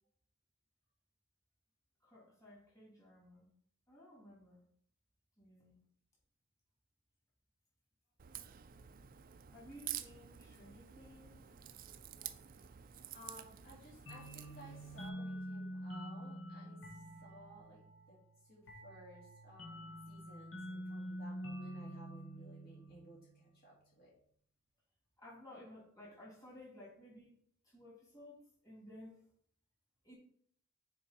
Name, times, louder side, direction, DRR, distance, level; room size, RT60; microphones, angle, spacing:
voice 1, 2.0-3.5 3.9-4.6 5.4-5.7 9.5-11.4 13.0-13.2 25.2-27.3 27.6-29.3 30.0-30.1, left 1 dB, 15° left, -7 dB, 3.2 m, -56 dB
Crack, 8.2-15.1, right 11 dB, 45° right, 0.4 m, -49 dB
voice 2, 13.1-18.2 18.4-24.1, right 1 dB, 50° left, -6 dB, 2.7 m, -57 dB
sound 1, 14.1-23.4, equal, 70° left, 1.6 m, -47 dB
6.7 x 4.8 x 4.5 m, 0.62 s
head